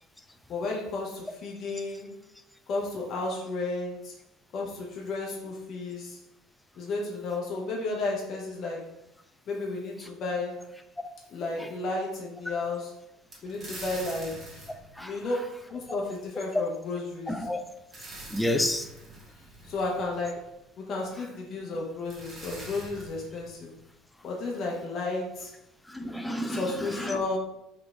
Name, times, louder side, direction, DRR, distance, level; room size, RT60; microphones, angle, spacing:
voice 1, 0.5-2.1 2.7-4.1 4.5-6.2 6.8-8.9 9.5-10.7 11.3-13.0 13.4-14.6 15.0-17.5 19.6-23.7 24.2-25.5 26.5-27.4, left 3 dB, 45° left, -2 dB, 0.9 m, -33 dB
sound 1, 13.3-16.0 17.5-20.6 21.7-21.8 22.0-23.9, right 1 dB, 35° right, 1.4 m, -45 dB
voice 2, 17.3-17.6 18.3-18.9 25.9-26.6 27.0-27.2, left 1 dB, 5° left, 6 dB, 0.5 m, -29 dB
4.2 x 3.3 x 3.2 m, 0.85 s
figure-of-eight pair, 60°, 0 cm